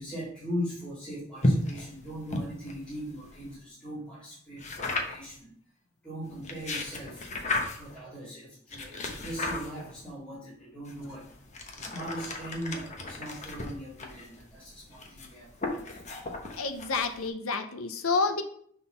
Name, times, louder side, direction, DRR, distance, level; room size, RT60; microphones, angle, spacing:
voice 1, 0.0-5.5 6.0-7.3 7.7-11.5 11.7-15.8, equal, 5° left, -12 dB, 2.2 m, -40 dB
sound 1, 1.4-3.6 4.6-5.4 6.3-8.0 8.7-10.1 10.8-17.3, left 2 dB, 35° left, 1.0 m, -34 dB
voice 2, 16.6-18.4, left 4 dB, 80° left, 7 dB, 0.7 m, -29 dB
6.5 x 3.8 x 5.6 m, 0.62 s
head